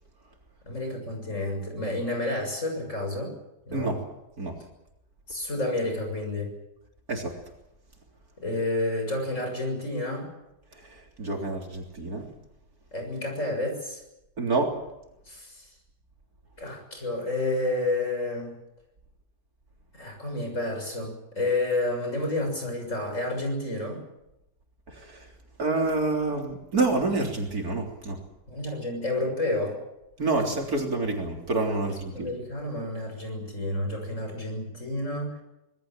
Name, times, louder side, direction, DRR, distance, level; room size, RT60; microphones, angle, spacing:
voice 1, 0.7-3.3 3.7-4.0 5.3-6.5 8.4-10.3 12.9-14.0 15.3-15.7 16.6-18.5 19.9-24.0 28.5-29.7 31.9-35.4, left 2 dB, 45° left, 3 dB, 7.1 m, -30 dB
voice 2, 11.2-12.3 14.4-14.7 24.9-25.3 25.6-28.2 30.2-32.3, right 3 dB, 55° right, 1 dB, 4.0 m, -27 dB
26.0 x 20.0 x 7.5 m, 0.89 s
omnidirectional pair, 1.8 m